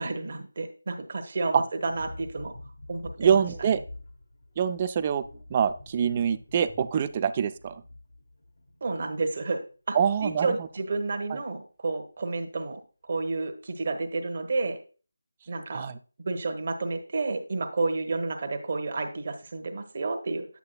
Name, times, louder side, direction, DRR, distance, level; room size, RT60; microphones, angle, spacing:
voice 1, 0.0-2.5 2.9-3.4 8.8-9.6 9.9-12.8 13.1-14.8 15.5-15.9 16.2-20.5, right 3 dB, 40° right, 5 dB, 1.1 m, -30 dB
sound 1, 1.8-9.2 9.5-9.7, left 2 dB, 60° left, 1.1 m, -47 dB
voice 2, 3.2-3.8 4.6-5.2 5.5-7.8 9.9-10.5 15.7-16.0, right 7 dB, 25° right, 12 dB, 0.4 m, -25 dB
8.5 x 8.3 x 2.3 m, 0.38 s
figure-of-eight pair, 160°, 0 cm